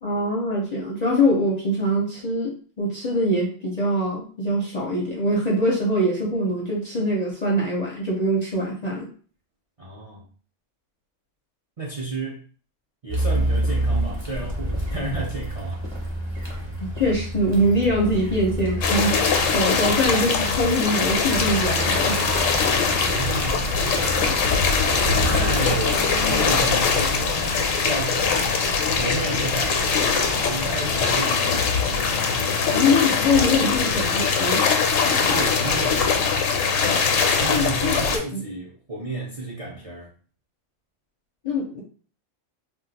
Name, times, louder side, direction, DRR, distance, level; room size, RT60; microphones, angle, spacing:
voice 1, 0.0-9.1 17.0-19.2 19.5-22.2 32.7-34.6 37.5-38.4 41.4-41.8, left 1 dB, 45° left, 0.5 m, -23 dB
voice 2, 9.8-10.3 11.8-12.4 13.0-15.8 23.1-24.5 25.3-28.5 29.0-31.9 35.3-36.4 37.4-40.1, right 2 dB, 45° right, 0.4 m, -32 dB
Car, 13.1-26.8, right 1 dB, 25° right, 0.8 m, -29 dB
sound 1, 18.8-38.2, left 5 dB, 90° left, 1.0 m, -22 dB
sound 2, 21.3-31.3, right 3 dB, 65° right, 0.8 m, -34 dB
2.3 x 2.3 x 3.9 m
omnidirectional pair, 1.3 m